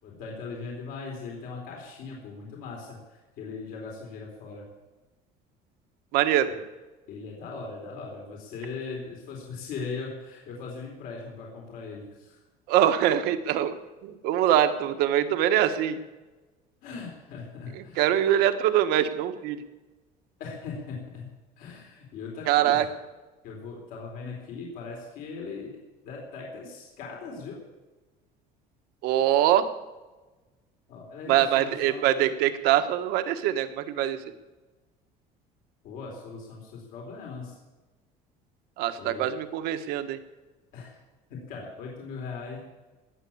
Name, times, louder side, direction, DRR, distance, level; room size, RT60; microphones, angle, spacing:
voice 1, 0.0-4.6 6.5-6.6 7.1-12.4 16.8-18.1 20.4-22.8 23.4-25.8 26.0-27.6 30.9-32.1 35.8-37.6 39.0-39.3 40.7-41.0 41.3-42.6, left 4 dB, 65° left, -1 dB, 4.0 m, -39 dB
voice 2, 6.1-6.5 12.7-13.7 14.0-16.0 17.7-19.6 22.5-22.8 29.0-29.7 31.3-34.2 38.8-40.2, right 11 dB, 70° right, 9 dB, 1.4 m, -23 dB
20.0 x 7.6 x 8.6 m, 1.2 s
cardioid pair, 165°, 17 cm